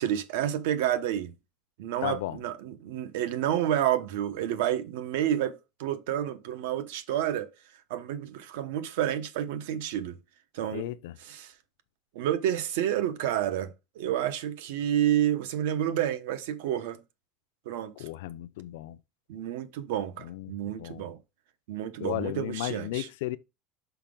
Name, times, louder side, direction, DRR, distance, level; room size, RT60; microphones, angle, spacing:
voice 1, 0.0-1.3 1.8-7.5 7.9-10.2 10.5-10.9 11.2-11.5 12.1-17.0 17.7-18.1 19.3-21.2 21.7-23.1, right 11 dB, 85° right, 0.9 m, -29 dB
voice 2, 2.0-2.4 10.7-11.1 18.0-19.0 20.2-21.1 22.0-23.4, left 15 dB, 90° left, 0.5 m, -34 dB
5.8 x 4.9 x 3.7 m
cardioid pair, 165°, 0 cm